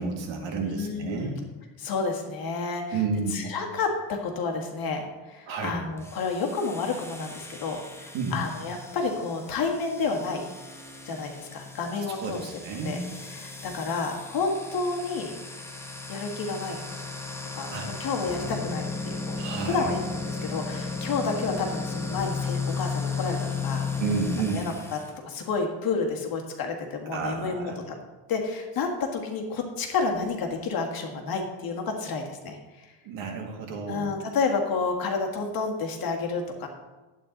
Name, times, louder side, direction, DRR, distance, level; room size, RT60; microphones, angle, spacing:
voice 1, 0.0-1.4 2.9-3.4 5.5-5.8 8.1-8.4 12.1-13.0 17.7-17.9 19.4-19.9 24.0-24.6 27.1-27.8 33.0-34.1, right 4 dB, 85° right, 2 dB, 2.1 m, -31 dB
voice 2, 0.6-1.3 1.8-3.0 3.3-10.4 11.0-12.5 12.8-13.0 13.3-15.3 16.1-16.8 17.5-19.4 19.6-23.9 24.5-25.0 25.2-27.9 28.3-32.9 33.9-36.7, left 4 dB, 50° left, 2 dB, 1.8 m, -30 dB
sound 1, 6.0-25.1, left 4 dB, 5° left, 0.9 m, -35 dB
11.0 x 8.6 x 4.0 m, 1.2 s
cardioid pair, 150°, 44 cm